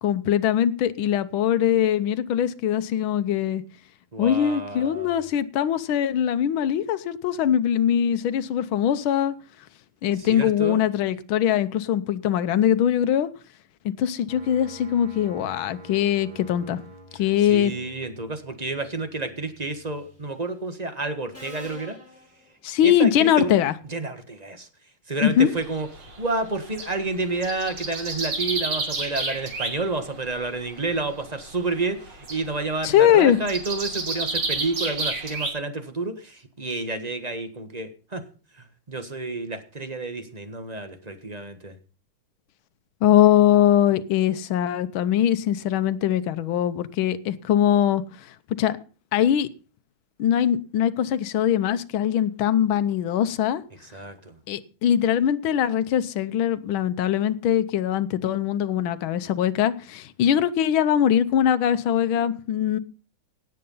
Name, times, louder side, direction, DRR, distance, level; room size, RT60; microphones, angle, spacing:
voice 1, 0.0-3.6 4.2-9.4 10.0-13.3 13.9-16.8 17.1-17.7 22.6-23.7 25.2-25.5 32.8-33.4 43.0-48.0 48.6-48.8 49.1-49.5 50.2-53.6 54.5-62.8, left 10 dB, 80° left, 1.6 m, -22 dB
voice 2, 4.1-5.3 10.2-10.8 17.4-22.0 22.8-23.6 23.9-24.7 25.1-38.2 38.5-41.8 53.8-54.4, right 3 dB, 20° right, 1.4 m, -30 dB
sound 1, 14.3-20.3, right 1 dB, 50° right, 2.7 m, -48 dB
Subway metro underground, 19.8-20.2 21.3-23.0, left 1 dB, 5° left, 6.9 m, -47 dB
sound 2, 25.5-26.9 27.3-29.9 30.2-30.7 31.3-31.7 32.0-35.5, right 3 dB, 90° right, 3.8 m, -30 dB
17.5 x 7.6 x 5.5 m
omnidirectional pair, 2.2 m